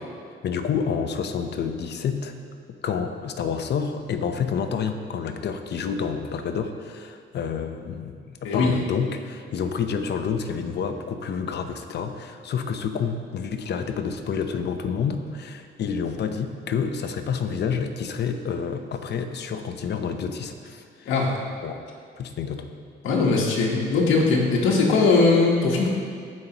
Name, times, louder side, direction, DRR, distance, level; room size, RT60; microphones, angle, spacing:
voice 1, 0.4-2.3 2.8-21.1 21.6-21.8 22.2-22.7, left 6 dB, 60° left, 7 dB, 0.7 m, -29 dB
voice 2, 8.4-8.8 21.1-21.3 23.0-25.9, left 3 dB, 85° left, -3 dB, 1.3 m, -20 dB
15.0 x 5.4 x 2.9 m, 2.1 s
cardioid pair, 90°, 20 cm